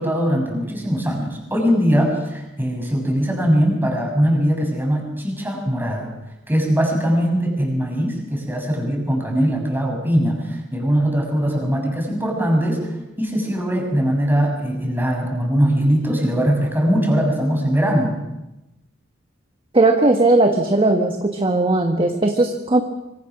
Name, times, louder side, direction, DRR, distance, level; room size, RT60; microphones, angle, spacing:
voice 1, 0.0-6.1 6.5-18.1, equal, 10° right, 1 dB, 6.7 m, -21 dB
voice 2, 19.7-22.8, right 2 dB, 25° right, 4 dB, 1.6 m, -17 dB
25.5 x 25.0 x 6.2 m, 0.95 s
head